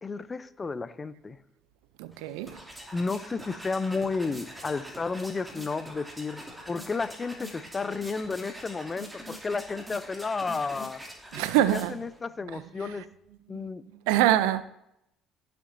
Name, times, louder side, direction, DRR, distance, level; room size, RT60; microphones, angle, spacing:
voice 1, 0.0-1.4 2.9-11.0 11.7-13.0 13.5-13.8, left 4 dB, 30° left, 0.6 m, -32 dB
voice 2, 2.0-2.6 11.3-11.9 12.5-12.6 13.5-13.6 14.1-14.6, right 13 dB, 85° right, 0.4 m, -24 dB
sound 1, 2.1-12.2, equal, 10° right, 2.6 m, -44 dB
13.5 x 6.8 x 2.7 m
supercardioid pair, 75°, 0 cm